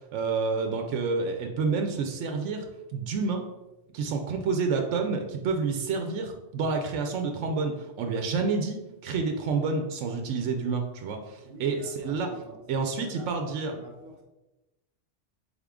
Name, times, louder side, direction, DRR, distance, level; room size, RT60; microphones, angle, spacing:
voice 1, 0.1-3.5 3.9-12.3 12.7-13.8, right 4 dB, 90° right, 4 dB, 0.9 m, -29 dB
voice 2, 11.4-13.3 13.6-14.2, right 2 dB, 55° right, -1 dB, 1.2 m, -47 dB
4.0 x 3.6 x 3.5 m, 1.0 s
omnidirectional pair, 1.2 m